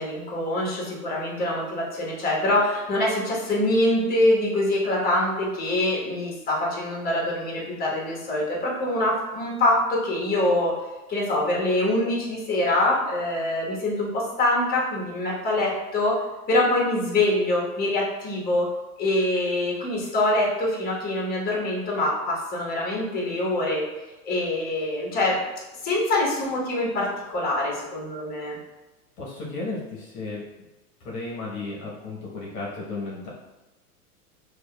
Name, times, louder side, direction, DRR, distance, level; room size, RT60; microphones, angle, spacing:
voice 1, 0.0-10.7 11.1-16.2 16.5-18.7 19.0-23.8 24.2-25.4 25.8-28.6, left 1 dB, 20° left, -3 dB, 1.2 m, -24 dB
voice 2, 29.2-30.4 31.0-33.3, left 3 dB, 45° left, -4 dB, 1.1 m, -34 dB
6.1 x 2.5 x 2.2 m, 1.1 s
hypercardioid pair, 100°, 45 cm